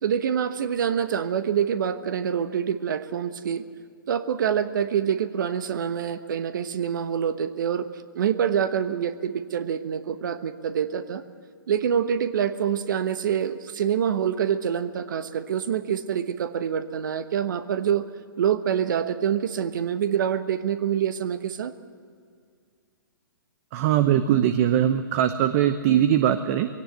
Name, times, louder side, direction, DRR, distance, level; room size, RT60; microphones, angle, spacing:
voice 1, 0.0-3.6 4.1-7.9 8.1-11.2 11.7-18.0 18.4-21.7, right 8 dB, 60° right, 11 dB, 1.2 m, -26 dB
voice 2, 23.7-26.7, right 10 dB, 40° right, 10 dB, 0.9 m, -21 dB
20.5 x 17.5 x 7.8 m, 2.1 s
hypercardioid pair, 125°, 12 cm